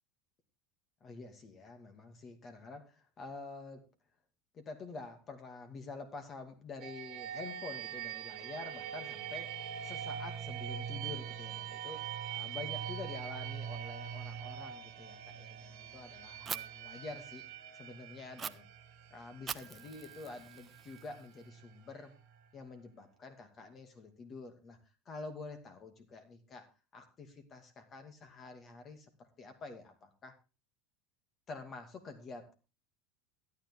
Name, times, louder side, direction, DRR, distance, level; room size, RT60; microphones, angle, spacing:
voice 1, 1.0-3.9 4.5-9.6 9.8-17.4 17.7-18.7 19.1-22.1 22.5-24.8 25.1-26.7 26.9-30.3 31.5-32.5, left 3 dB, 35° left, 7 dB, 2.4 m, -48 dB
sound 1, 6.8-22.4, right 9 dB, 55° right, 1.8 m, -43 dB
Fire, 16.5-16.6 18.4-18.5 19.5-21.4, right 7 dB, 30° right, 0.7 m, -43 dB
13.0 x 9.9 x 3.7 m, 0.30 s
hypercardioid pair, 100°, 0 cm